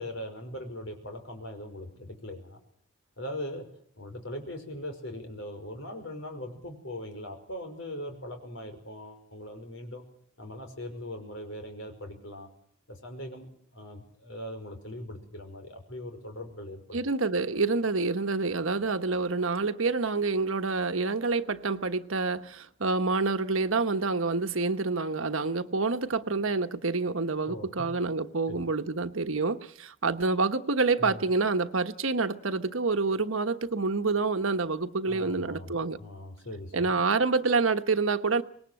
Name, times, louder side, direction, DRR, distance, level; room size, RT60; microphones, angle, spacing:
voice 1, 0.0-2.6 3.2-3.7 4.0-10.0 10.4-12.5 12.9-13.5 13.7-17.0 27.5-27.9 28.5-28.6 31.0-31.2 35.0-36.8, left 1 dB, 70° left, 5.6 m, -40 dB
voice 2, 16.9-36.0 36.7-38.4, right 3 dB, 80° right, 1.3 m, -27 dB
25.5 x 19.5 x 7.8 m
head